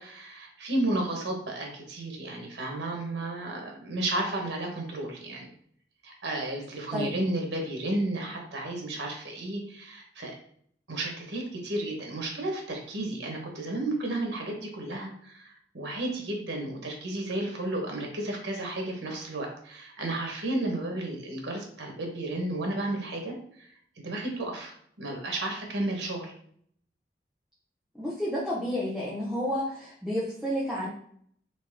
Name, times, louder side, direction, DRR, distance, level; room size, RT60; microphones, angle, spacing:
voice 1, 0.0-5.5 6.0-10.3 10.9-23.7 24.0-26.3, right 1 dB, 90° right, 1 dB, 1.3 m, -33 dB
voice 2, 27.9-30.9, equal, 5° right, -7 dB, 0.8 m, -30 dB
4.1 x 3.0 x 3.6 m, 0.63 s
head